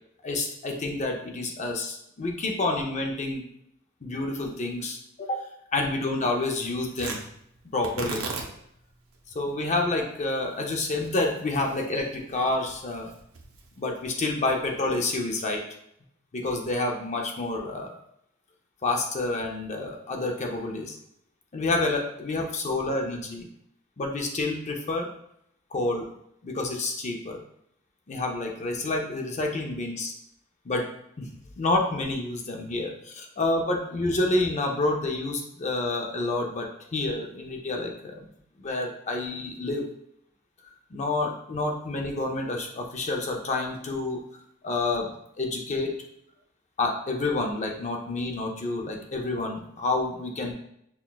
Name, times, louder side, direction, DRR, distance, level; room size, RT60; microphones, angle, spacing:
voice 1, 0.2-3.4 4.0-5.4 5.7-7.2 7.7-8.3 9.3-13.1 13.8-15.6 16.3-17.9 18.8-21.0 21.5-23.5 24.0-25.1 25.7-26.0 26.4-27.4 28.1-30.1 30.6-30.9 31.2-31.3 31.6-38.2 38.6-39.9 40.9-44.2 44.6-45.1 45.4-46.0 46.8-50.5, left 2 dB, 35° left, 2 dB, 0.5 m, -28 dB
Tearing, 6.9-15.3, right 4 dB, 85° right, 0.6 m, -41 dB
5.7 x 2.3 x 2.3 m, 0.74 s
head